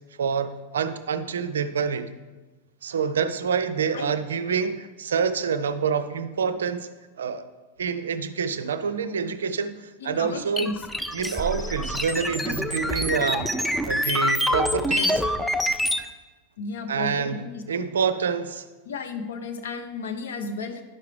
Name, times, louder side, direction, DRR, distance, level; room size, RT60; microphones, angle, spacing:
voice 1, 0.2-2.1 2.8-6.9 7.2-7.4 7.8-10.7 11.1-13.5 13.9-15.2 16.9-18.7, right 6 dB, 65° right, 12 dB, 0.4 m, -27 dB
voice 2, 10.0-10.7 16.6-17.6 18.9-20.8, left 4 dB, 60° left, 7 dB, 0.8 m, -33 dB
sound 1, 10.6-16.0, left 1 dB, 5° left, 0.5 m, -26 dB
10.5 x 5.7 x 3.2 m, 1.2 s
figure-of-eight pair, 90°, 0 cm